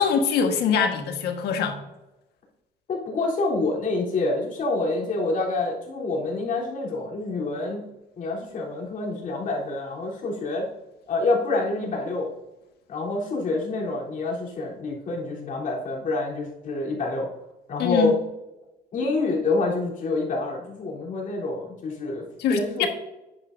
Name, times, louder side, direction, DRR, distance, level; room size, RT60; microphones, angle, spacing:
voice 1, 0.0-1.8 17.8-18.1 22.4-22.9, left 7 dB, 75° left, 5 dB, 1.5 m, -23 dB
voice 2, 2.9-7.9 8.2-10.7 11.1-12.3 12.9-17.3 17.7-18.2 18.9-22.2 22.5-22.9, left 3 dB, 50° left, -3 dB, 3.5 m, -27 dB
10.0 x 9.2 x 2.6 m, 1.0 s
cardioid pair, 110°, 17 cm